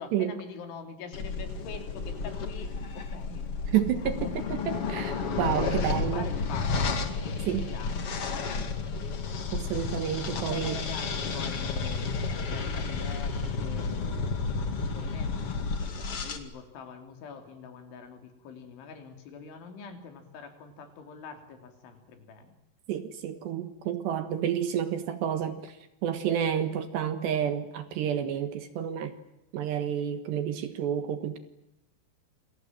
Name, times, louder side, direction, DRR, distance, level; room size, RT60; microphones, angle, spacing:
voice 1, 0.0-4.5 5.6-9.1 10.4-14.5 14.9-15.4 15.8-22.6 25.5-25.6, left 5 dB, 65° left, 6 dB, 5.5 m, -44 dB
sound 1, 1.1-16.4, left 4 dB, 45° left, 2.1 m, -32 dB
voice 2, 3.7-6.3 7.5-7.7 9.5-10.8 22.9-25.7 26.0-29.1 29.5-31.4, right 9 dB, 65° right, 10 dB, 3.2 m, -30 dB
28.0 x 27.0 x 7.6 m, 0.91 s
omnidirectional pair, 5.9 m